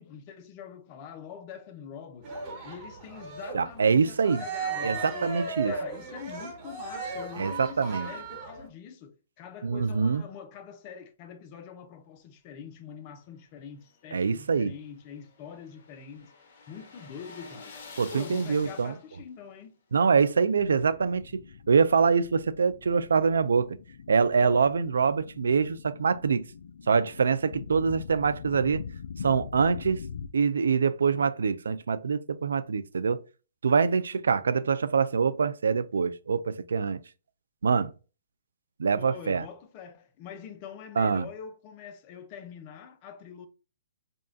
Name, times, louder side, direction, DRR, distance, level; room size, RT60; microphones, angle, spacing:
voice 1, 0.0-2.3 2.6-5.3 5.6-16.3 16.7-17.8 18.1-19.7 38.9-43.5, left 7 dB, 35° left, 0.6 m, -44 dB
Cheering, 2.2-8.7, right 4 dB, 30° right, 1.2 m, -36 dB
voice 2, 3.5-4.4 4.8-5.7 7.4-8.1 9.6-10.2 14.1-14.7 18.0-18.9 19.9-21.2 21.7-23.8 24.1-26.4 26.9-28.8 29.2-30.0 30.3-33.2 33.6-37.0 37.6-37.9 38.8-39.4 41.0-41.3, right 5 dB, 90° right, 0.3 m, -24 dB
sound 1, 13.8-19.3, left 4 dB, 55° left, 1.3 m, -48 dB
sound 2, 20.6-30.3, left 6 dB, 80° left, 0.4 m, -43 dB
5.1 x 2.4 x 2.6 m
hypercardioid pair, 150°, 0 cm